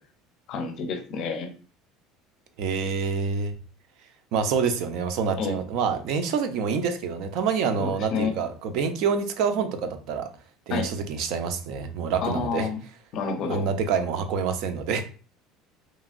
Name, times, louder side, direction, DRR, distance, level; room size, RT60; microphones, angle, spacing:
voice 1, 0.5-1.5 5.4-5.6 7.8-8.3 10.7-10.9 12.2-12.8 13.1-13.7, left 5 dB, 40° left, 0.5 m, -29 dB
voice 2, 2.6-3.5 4.3-10.3 10.7-12.7 13.5-15.0, right 6 dB, 55° right, 0.4 m, -27 dB
2.9 x 2.5 x 2.4 m
cardioid pair, 165°, 0 cm